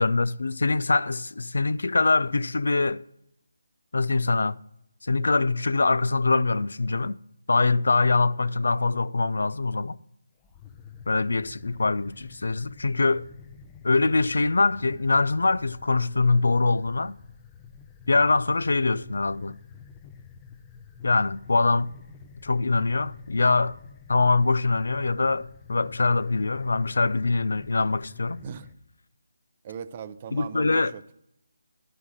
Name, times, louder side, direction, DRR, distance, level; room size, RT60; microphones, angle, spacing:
voice 1, 0.0-3.0 3.9-4.6 5.0-7.2 7.5-10.0 11.1-13.3 13.8-17.2 18.1-19.6 21.0-21.9 22.4-23.8 24.1-28.4 30.3-30.9, left 3 dB, 75° left, 0.3 m, -23 dB
sound 1, 10.4-28.7, left 6 dB, 15° left, 0.6 m, -48 dB
voice 2, 29.6-31.1, right 7 dB, 30° right, 0.5 m, -39 dB
11.0 x 5.6 x 6.2 m
figure-of-eight pair, 165°, 0 cm